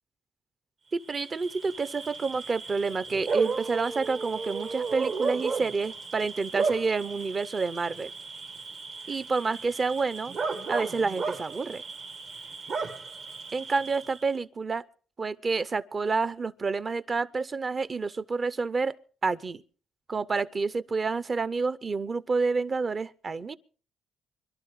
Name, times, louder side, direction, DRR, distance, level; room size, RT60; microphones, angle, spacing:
voice 1, 0.9-8.1 9.1-10.4 10.7-11.8 13.5-14.8 15.2-18.9 19.2-19.6 20.1-23.6, right 4 dB, 35° right, 0.6 m, -29 dB
Bark / Cricket, 1.0-14.3, right 4 dB, 60° right, 1.3 m, -34 dB
25.5 x 12.0 x 3.1 m
cardioid pair, 90°, 0 cm